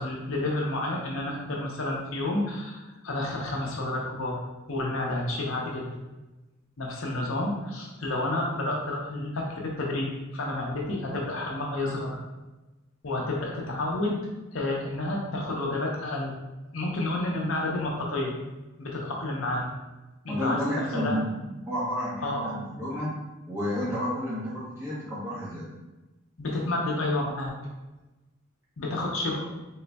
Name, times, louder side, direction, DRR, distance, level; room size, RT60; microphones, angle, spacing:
voice 1, 0.0-4.4 4.7-5.9 6.8-12.2 13.0-14.2 14.5-16.3 16.7-18.3 18.8-19.7 20.2-21.2 22.2-22.4 26.4-27.5 28.8-29.4, left 2 dB, 70° left, -1 dB, 0.8 m, -30 dB
voice 2, 20.3-23.1 23.5-25.7, equal, 10° right, -9 dB, 0.9 m, -31 dB
4.0 x 3.7 x 2.3 m, 1.1 s
head